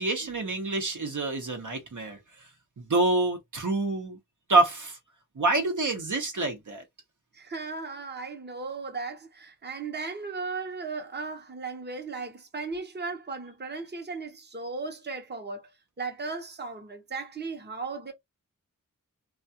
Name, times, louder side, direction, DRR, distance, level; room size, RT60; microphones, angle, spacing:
voice 1, 0.0-2.2 2.8-4.2 4.5-5.0 5.4-6.8, right 2 dB, 60° right, 0.8 m, -26 dB
voice 2, 7.3-15.7 16.0-18.1, right 4 dB, 30° right, 0.8 m, -36 dB
2.3 x 2.3 x 2.7 m
wide cardioid pair, 40°, 34 cm